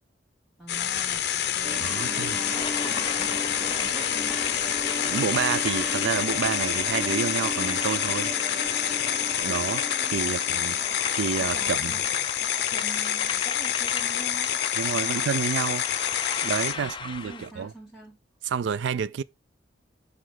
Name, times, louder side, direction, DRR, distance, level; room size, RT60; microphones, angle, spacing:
voice 1, 0.6-4.4 10.1-10.4 11.2-14.6 14.9-15.3 16.7-18.2, right 2 dB, ahead, 1.5 m, -45 dB
sound 1, 0.7-16.7, left 10 dB, 60° left, 0.7 m, -27 dB
sound 2, 1.6-12.4, equal, 35° right, 2.3 m, -36 dB
voice 2, 1.8-2.3 5.1-8.3 9.4-9.8 10.1-10.8 11.1-11.9 14.8-15.9 16.4-17.7 18.5-19.2, right 7 dB, 75° right, 0.3 m, -29 dB
sound 3, 2.4-17.5, left 5 dB, 25° left, 0.4 m, -37 dB
5.1 x 4.9 x 3.8 m
head